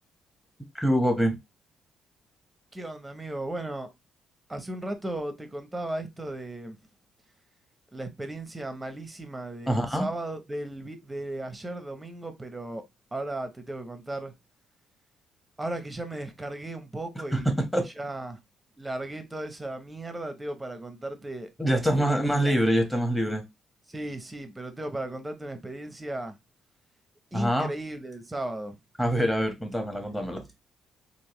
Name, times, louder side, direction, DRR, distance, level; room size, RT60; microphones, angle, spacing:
voice 1, 0.7-1.4 9.7-10.1 17.3-17.4 17.7-17.8 21.6-23.4 27.3-27.7 29.0-30.4, equal, 5° left, 1.3 m, -25 dB
voice 2, 2.7-3.9 4.5-6.8 7.9-12.8 13.1-14.3 15.6-18.4 18.8-22.6 23.9-26.3 27.3-28.8, right 1 dB, 15° right, 0.8 m, -36 dB
3.6 x 2.6 x 3.1 m
cardioid pair, 90°, 0 cm